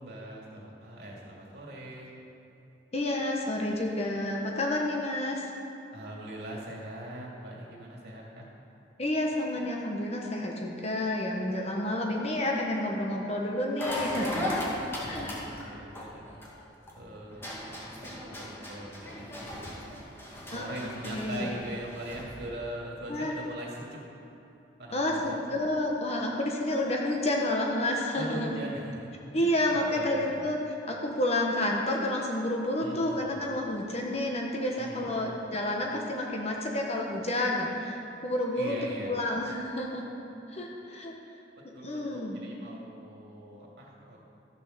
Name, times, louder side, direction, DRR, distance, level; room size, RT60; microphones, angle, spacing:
voice 1, 0.0-2.1 5.9-8.5 15.0-16.3 16.9-17.5 18.0-19.6 20.5-24.0 24.8-25.4 28.1-30.4 32.8-33.4 34.7-35.2 38.5-39.2 41.7-44.2, right 1 dB, 60° right, -3 dB, 2.5 m, -41 dB
voice 2, 2.9-5.5 9.0-14.5 15.0-15.3 20.5-20.6 21.0-21.5 23.1-23.3 24.9-28.5 29.3-30.6 30.9-38.7 39.1-40.0 40.5-41.1 41.8-42.4, left 1 dB, 35° left, -1 dB, 1.2 m, -30 dB
sound 1, 13.8-16.9 17.3-22.4, left 1 dB, 15° left, 2.1 m, -36 dB
13.5 x 6.9 x 6.7 m, 2.9 s
head